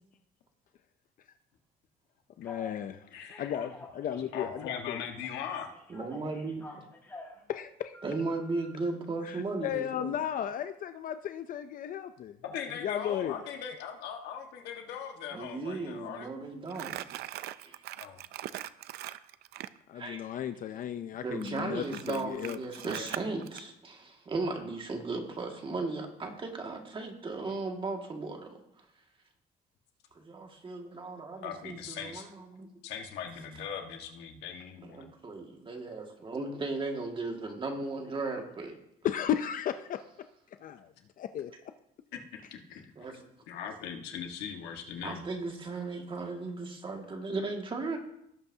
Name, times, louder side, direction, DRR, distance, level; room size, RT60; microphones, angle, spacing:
voice 1, 2.4-3.1 3.4-5.0 7.5-8.0 9.2-12.4 12.8-13.5 19.9-23.1 39.0-40.0 40.6-41.5, left 10 dB, 55° left, 10 dB, 0.6 m, -35 dB
Telephone, 2.4-2.8 3.3-4.9 5.2-7.4 7.9-8.6, left 2 dB, 15° left, 3.8 m, -48 dB
voice 2, 3.1-3.7 4.2-5.7 12.4-16.3 18.0-18.2 31.4-32.3 32.8-35.0 42.1-42.9 43.5-45.2, left 8 dB, 85° left, 3 dB, 1.5 m, -40 dB
voice 3, 5.9-6.9 8.0-10.2 15.3-17.0 17.6-17.8 19.9-20.2 21.2-28.6 30.2-32.7 34.8-38.7 43.0-43.3 45.0-48.0, right 3 dB, 30° right, 2 dB, 2.0 m, -36 dB
Crumpling crinkling, 16.7-19.8 21.4-23.6, right 14 dB, 75° right, 0.5 m, -41 dB
18.0 x 7.9 x 2.8 m, 0.76 s
cardioid pair, 110°, 17 cm